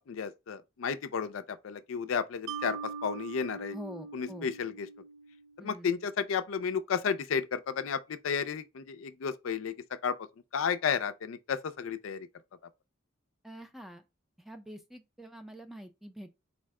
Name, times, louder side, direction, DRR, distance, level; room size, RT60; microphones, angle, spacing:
voice 1, 0.0-3.7 4.1-4.7 5.6-9.7 10.0-10.1 10.5-12.3, left 6 dB, 75° left, 0.4 m, -32 dB
Mallet percussion, 2.5-5.8, right 5 dB, 85° right, 0.4 m, -42 dB
voice 2, 3.7-4.5 5.6-5.9 13.4-14.0 14.4-16.4, equal, ahead, 0.5 m, -46 dB
4.2 x 2.1 x 4.6 m
head